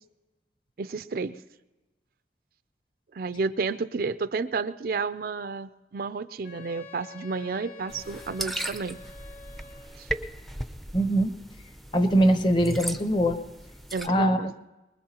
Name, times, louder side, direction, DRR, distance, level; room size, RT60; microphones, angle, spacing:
voice 1, 0.8-1.4 3.1-9.0 10.0-10.1 13.9-14.5, right 4 dB, 55° right, 12 dB, 0.4 m, -31 dB
Wind instrument woodwind instrument, 6.4-10.2, left 4 dB, 70° left, 3.2 m, -47 dB
sound 1, 7.9-14.1, right 1 dB, ahead, 0.5 m, -37 dB
voice 2, 10.9-11.3 11.9-13.4 14.0-14.5, right 1 dB, 25° left, 8 dB, 0.9 m, -22 dB
23.5 x 21.0 x 2.9 m, 1.1 s
head